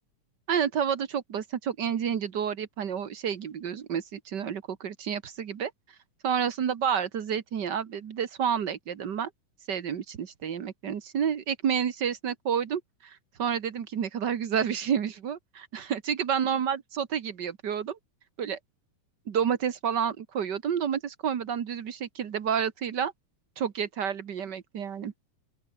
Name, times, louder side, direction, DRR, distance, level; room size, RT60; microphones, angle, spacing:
voice 1, 0.5-5.7 6.2-9.3 9.7-18.0 18.4-18.6 19.3-23.1 23.6-25.1, right 8 dB, 55° right, 1.2 m, -30 dB
open air
omnidirectional pair, 3.8 m